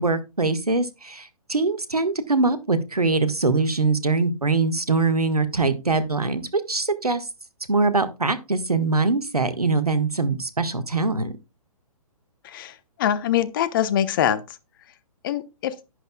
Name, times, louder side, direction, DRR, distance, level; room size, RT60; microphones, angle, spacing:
voice 1, 0.0-7.2 7.7-11.3, right 3 dB, 85° right, 1.6 m, -23 dB
voice 2, 13.0-14.4 15.2-15.7, left 10 dB, 35° left, 1.0 m, -23 dB
11.0 x 10.5 x 2.3 m
figure-of-eight pair, 130°, 19 cm